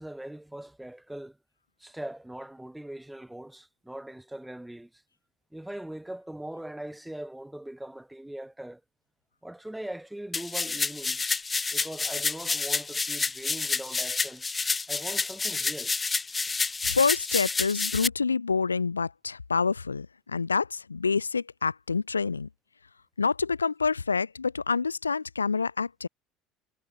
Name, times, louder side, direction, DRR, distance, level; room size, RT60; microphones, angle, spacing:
voice 1, 0.0-1.4 1.8-5.0 5.5-8.8 9.4-11.2 11.7-14.5 14.9-15.9, right 1 dB, 5° right, 4.1 m, -41 dB
sound 1, 10.3-18.1, left 4 dB, 20° left, 3.9 m, -29 dB
voice 2, 16.8-22.5 23.2-26.1, left 5 dB, 90° left, 1.8 m, -27 dB
figure-of-eight pair, 65°, 0 cm